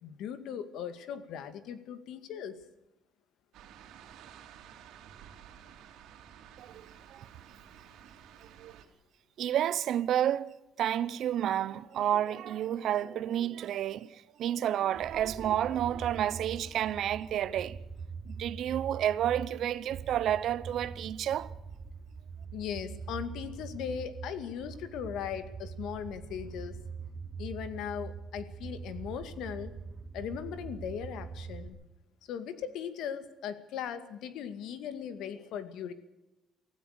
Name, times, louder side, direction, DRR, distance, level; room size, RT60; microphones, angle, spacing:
voice 1, 0.0-2.6 22.5-26.8 27.4-29.8 30.1-31.8 32.3-35.9, left 8 dB, 75° left, 2.1 m, -38 dB
sound 1, 3.5-8.9, right 9 dB, 80° right, 3.0 m, -53 dB
voice 2, 6.6-7.2 8.6-8.8 9.4-17.8 18.3-21.5, right 11 dB, 55° right, 0.9 m, -30 dB
sound 2, 14.9-31.7, right 5 dB, 30° right, 6.7 m, -43 dB
24.5 x 15.5 x 6.7 m
cardioid pair, 160°, 0 cm